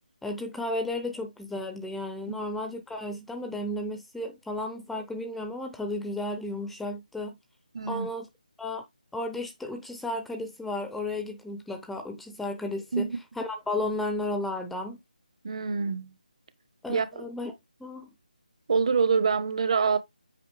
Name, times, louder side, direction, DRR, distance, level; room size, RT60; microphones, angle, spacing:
voice 1, 0.2-7.4 7.9-8.3 8.6-8.8 9.1-13.1 13.4-15.0 16.8-17.5 17.8-18.1, left 2 dB, ahead, 0.7 m, -33 dB
voice 2, 7.7-8.1 12.9-13.2 15.4-16.1 16.9-17.2 18.7-20.0, right 5 dB, 45° right, 1.2 m, -26 dB
8.4 x 5.5 x 3.4 m
figure-of-eight pair, 160°, 5 cm